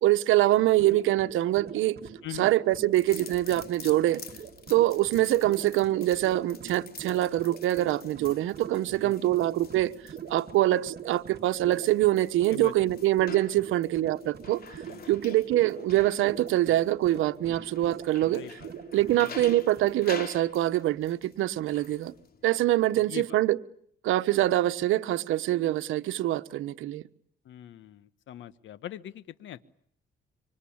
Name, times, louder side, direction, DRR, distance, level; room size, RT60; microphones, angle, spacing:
voice 1, 0.0-2.0 2.4-4.2 4.7-9.9 10.3-14.6 15.1-18.4 18.9-22.1 22.4-23.6 24.0-27.0, right 15 dB, 85° right, 1.2 m, -24 dB
sound 1, 0.6-20.0, right 7 dB, 55° right, 2.1 m, -44 dB
sound 2, 2.7-22.6, left 6 dB, 50° left, 3.2 m, -48 dB
voice 2, 9.0-9.3 12.5-12.9 14.8-15.2 18.3-18.7 19.2-19.4 22.9-23.4 27.4-29.7, left 11 dB, 75° left, 1.3 m, -42 dB
26.0 x 25.5 x 8.8 m
cardioid pair, 90°, 20 cm